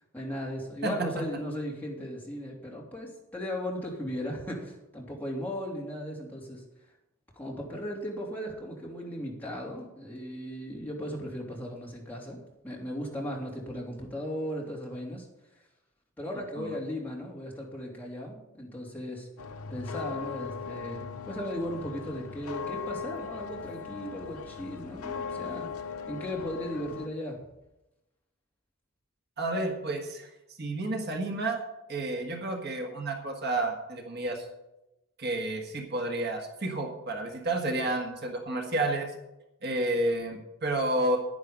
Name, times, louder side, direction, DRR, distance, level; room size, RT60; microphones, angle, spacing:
voice 1, 0.0-6.6 7.3-12.4 12.6-15.3 15.5-15.6 16.2-19.3 19.7-25.7 26.1-27.4, equal, 10° left, -4 dB, 2.9 m, -37 dB
sound 1, 19.4-27.1, left 6 dB, 85° left, 0.7 m, -39 dB
voice 2, 29.4-31.6 31.9-34.5 35.2-39.1 39.6-41.2, right 2 dB, 50° right, 2 dB, 1.7 m, -30 dB
10.5 x 10.5 x 5.2 m, 0.91 s
head